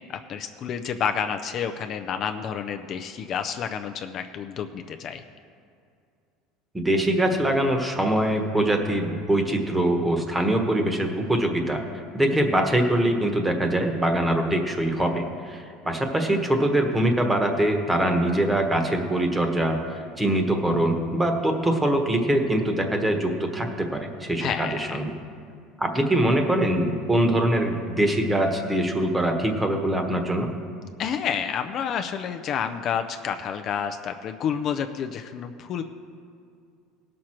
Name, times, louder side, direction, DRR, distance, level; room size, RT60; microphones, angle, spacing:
voice 1, 0.1-5.2 24.4-25.0 31.0-35.8, left 7 dB, 40° left, 7 dB, 0.5 m, -29 dB
voice 2, 6.7-11.8 12.1-25.1 25.8-30.5, right 1 dB, 10° right, 4 dB, 1.1 m, -23 dB
17.5 x 6.3 x 4.4 m, 2.4 s
supercardioid pair, 135°, 0 cm